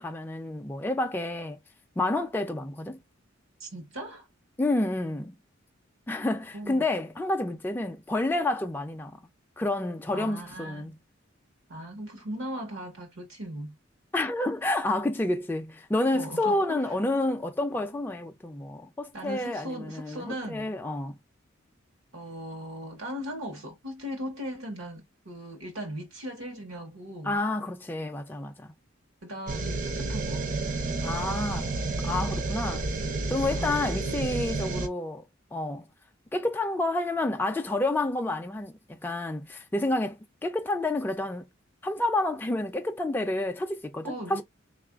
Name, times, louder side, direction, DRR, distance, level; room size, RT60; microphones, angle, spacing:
voice 1, 0.0-1.6 2.0-3.0 4.6-5.4 6.1-9.2 9.6-10.9 14.1-21.1 27.2-28.5 31.0-31.7 32.0-32.9 33.3-35.2 35.5-35.8 36.3-38.7 39.0-41.5 41.8-44.4, left 2 dB, 10° left, 0.3 m, -29 dB
voice 2, 3.6-4.3 6.5-6.8 10.1-10.9 11.7-13.8 16.1-17.0 19.1-20.8 22.1-27.4 29.2-30.4 33.5-33.9 44.0-44.4, equal, 80° right, 0.9 m, -38 dB
Steamy space drone, 29.5-34.9, right 3 dB, 40° right, 0.5 m, -30 dB
3.6 x 2.4 x 2.3 m
head